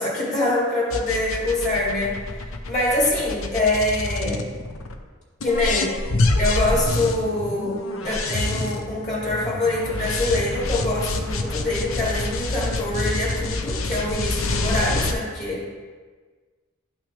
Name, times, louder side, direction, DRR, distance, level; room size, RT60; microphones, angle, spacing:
voice 1, 0.0-2.2 2.7-4.5 5.4-5.9 6.4-7.8 8.0-15.7, left 2 dB, 35° left, -4 dB, 2.1 m, -24 dB
sound 1, 0.9-5.0 5.4-15.1, left 2 dB, 70° left, 0.7 m, -27 dB
11.5 x 6.0 x 3.4 m, 1.5 s
head